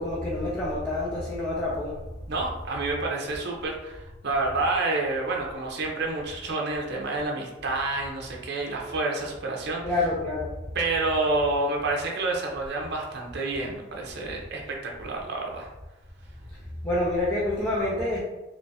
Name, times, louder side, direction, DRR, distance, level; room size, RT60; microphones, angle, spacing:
voice 1, 0.0-2.0 9.8-10.5 16.8-18.2, left 2 dB, 15° left, -7 dB, 0.6 m, -27 dB
voice 2, 2.3-10.0 10.7-15.7, right 2 dB, 55° right, 0 dB, 0.6 m, -29 dB
3.3 x 3.1 x 2.7 m, 1.0 s
head